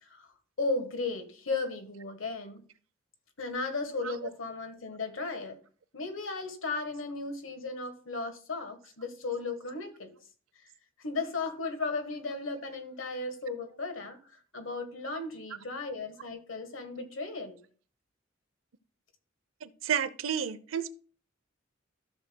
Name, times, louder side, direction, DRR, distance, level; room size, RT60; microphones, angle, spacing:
voice 1, 0.6-2.6 3.4-5.6 5.9-10.1 11.0-14.2 14.5-17.6, left 3 dB, 75° left, 1.4 m, -35 dB
voice 2, 19.6-20.9, right 8 dB, 85° right, 0.6 m, -31 dB
13.5 x 6.4 x 2.2 m
head